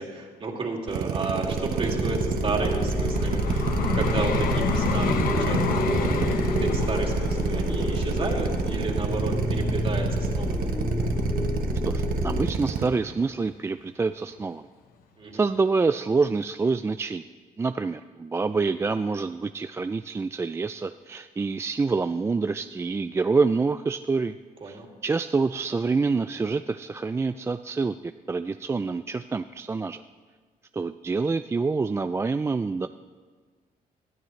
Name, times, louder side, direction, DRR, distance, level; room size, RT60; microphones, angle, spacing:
voice 1, 0.0-10.7 15.2-15.4 24.6-24.9, right 3 dB, 40° right, 1 dB, 2.5 m, -32 dB
Drill, 0.9-12.9, right 7 dB, 75° right, 1.1 m, -28 dB
Vehicle, 1.4-10.5 11.1-11.3, left 6 dB, 80° left, 1.1 m, -31 dB
sound 1, 1.5-12.5, left 2 dB, 5° left, 2.0 m, -29 dB
voice 2, 11.8-14.7 15.3-17.2 17.6-24.3 24.6-30.0 30.7-32.9, right 4 dB, 20° right, 10 dB, 0.3 m, -26 dB
21.0 x 13.0 x 3.2 m, 1.5 s
cardioid pair, 110°, 15 cm